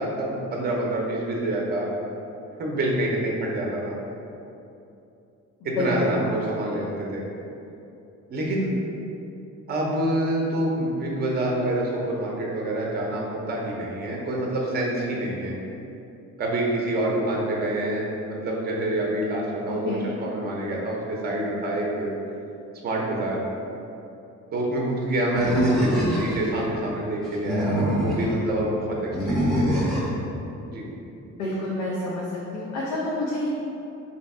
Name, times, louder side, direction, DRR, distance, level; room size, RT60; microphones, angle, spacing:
voice 1, 0.0-1.9 2.6-4.0 5.6-7.2 8.3-8.7 9.7-15.6 16.4-18.1 18.4-22.1 22.8-23.4 24.5-29.0 29.2-30.0 30.7-30.8, right 1 dB, 35° right, -2 dB, 0.6 m, -27 dB
Animal, 25.4-26.5 27.3-28.3 29.1-30.1, equal, ahead, 0.6 m, -24 dB
voice 2, 31.4-32.2 32.5-33.5, left 2 dB, 85° left, -5 dB, 0.6 m, -28 dB
3.3 x 2.8 x 4.2 m, 2.8 s
cardioid pair, 170°, 29 cm